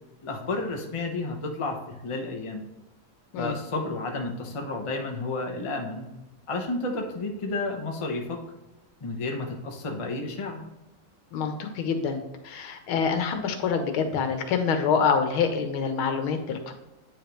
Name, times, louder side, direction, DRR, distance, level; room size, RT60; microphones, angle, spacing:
voice 1, 0.2-2.6 3.4-6.1 6.5-8.4 9.0-10.6, left 2 dB, 35° left, 2 dB, 0.5 m, -31 dB
voice 2, 11.3-16.7, left 6 dB, 85° left, 6 dB, 1.8 m, -26 dB
9.0 x 5.1 x 3.0 m, 1.0 s
omnidirectional pair, 2.3 m